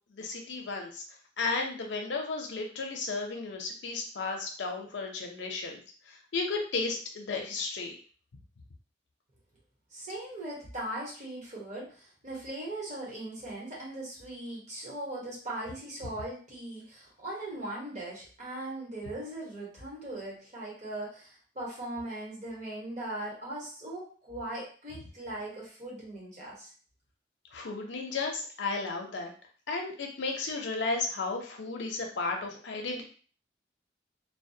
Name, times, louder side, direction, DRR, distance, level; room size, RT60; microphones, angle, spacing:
voice 1, 0.1-1.0 1.4-5.8 6.3-8.0 27.5-29.3 29.7-33.0, left 3 dB, 80° left, 2 dB, 0.5 m, -34 dB
voice 2, 9.9-26.7, right 1 dB, 40° right, -5 dB, 1.1 m, -39 dB
2.2 x 2.1 x 2.6 m, 0.41 s
head